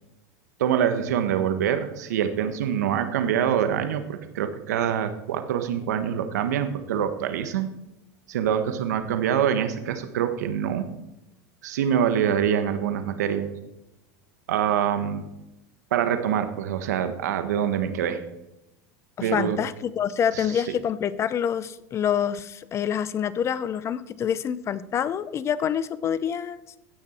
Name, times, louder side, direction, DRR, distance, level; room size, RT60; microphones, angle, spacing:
voice 1, 0.6-7.7 8.3-10.9 11.6-13.5 14.5-15.2 15.9-18.2 19.2-19.6 20.3-20.4, right 9 dB, 85° right, 8 dB, 1.3 m, -25 dB
voice 2, 19.2-26.6, left 8 dB, 30° left, 16 dB, 0.7 m, -26 dB
16.5 x 6.1 x 4.4 m, 0.89 s
supercardioid pair, 110°, 9 cm